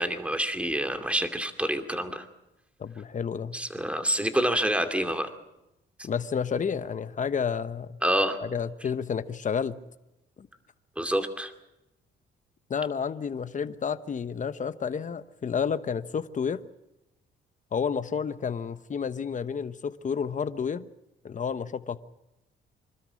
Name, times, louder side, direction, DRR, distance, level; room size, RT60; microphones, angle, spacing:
voice 1, 0.0-2.2 3.5-5.3 8.0-8.4 11.0-11.5, right 1 dB, 5° right, 7 dB, 2.4 m, -27 dB
voice 2, 2.8-3.6 6.0-8.0 8.4-9.8 10.4-10.5 12.7-16.6 17.7-20.9 21.2-22.0, left 6 dB, 40° left, 12 dB, 1.1 m, -30 dB
26.0 x 13.0 x 9.8 m, 0.93 s
cardioid pair, 90°, 20 cm